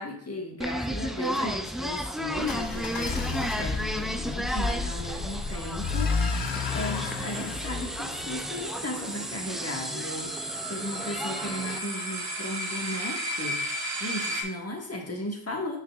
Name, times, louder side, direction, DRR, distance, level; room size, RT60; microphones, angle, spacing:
voice 1, 0.0-13.6 14.0-15.8, left 1 dB, 30° left, 1 dB, 1.6 m, -36 dB
sound 1, 0.6-11.8, equal, ahead, 0.3 m, -34 dB
sound 2, 2.4-9.3, left 5 dB, 60° left, 0.8 m, -32 dB
sound 3, 4.5-14.4, right 1 dB, 70° right, 1.6 m, -36 dB
6.5 x 6.5 x 2.4 m, 0.67 s
wide cardioid pair, 75°, 46 cm